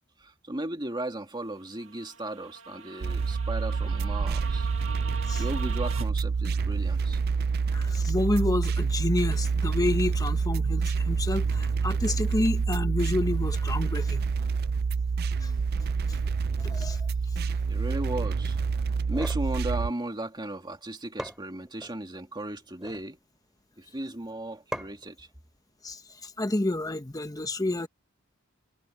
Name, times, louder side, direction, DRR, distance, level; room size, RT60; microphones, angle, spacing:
voice 1, 0.2-4.7 5.4-7.2 17.7-18.6 19.1-23.2 23.8-25.3, right 1 dB, 20° right, 2.3 m, -36 dB
sound 1, 1.6-6.0, right 4 dB, 70° right, 1.4 m, -42 dB
sound 2, 3.0-19.9, right 5 dB, 50° right, 0.4 m, -27 dB
voice 2, 7.7-14.3 15.4-15.5 16.6-17.0 25.8-27.9, left 2 dB, 15° left, 1.0 m, -29 dB
sound 3, 18.9-19.5 20.7-20.8 21.2-22.0 22.6-23.1 24.7-25.1, equal, 5° right, 5.6 m, -39 dB
head